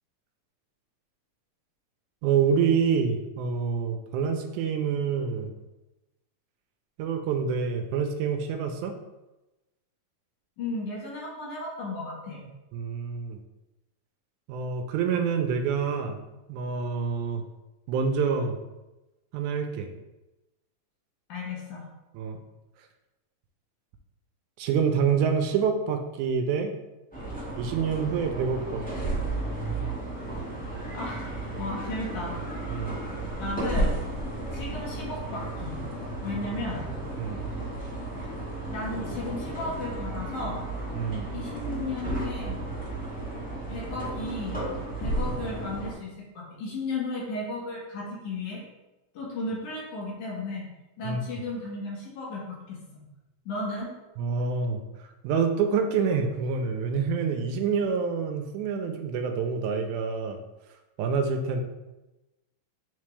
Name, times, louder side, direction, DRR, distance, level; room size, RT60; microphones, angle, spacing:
voice 1, 2.2-5.5 7.0-8.9 12.7-13.4 14.5-16.2 16.5-17.4 17.9-18.6 19.3-19.9 22.1-22.4 24.6-26.7 27.6-29.2 32.7-33.0 37.2-37.4 40.9-41.3 51.0-51.2 54.2-54.8 55.2-60.4 61.0-61.6, right 6 dB, 80° right, 5 dB, 1.9 m, -27 dB
voice 2, 10.6-12.4 21.3-21.9 30.9-31.2 31.5-32.4 33.4-34.0 34.5-35.8 36.2-36.9 38.2-38.3 38.7-40.6 41.3-42.6 43.7-44.6 45.0-48.6 49.1-50.7 51.0-53.0 53.5-53.9, left 2 dB, 65° left, -4 dB, 2.8 m, -34 dB
sound 1, 27.1-45.9, right 2 dB, 5° left, 0.7 m, -33 dB
8.5 x 3.7 x 3.3 m, 1.0 s
omnidirectional pair, 3.9 m